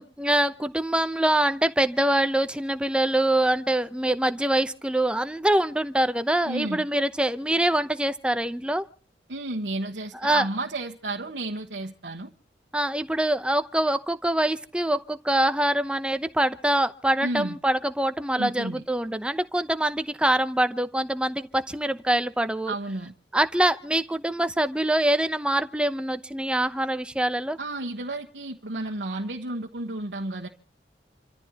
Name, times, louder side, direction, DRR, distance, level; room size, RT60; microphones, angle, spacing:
voice 1, 0.0-8.8 10.2-10.4 12.7-22.7 23.3-27.6, right 1 dB, 5° right, 0.8 m, -24 dB
voice 2, 6.5-6.8 9.3-12.3 17.2-17.6 18.4-18.8 22.7-23.1 27.6-30.5, right 2 dB, 80° right, 1.3 m, -32 dB
28.5 x 14.5 x 2.9 m
head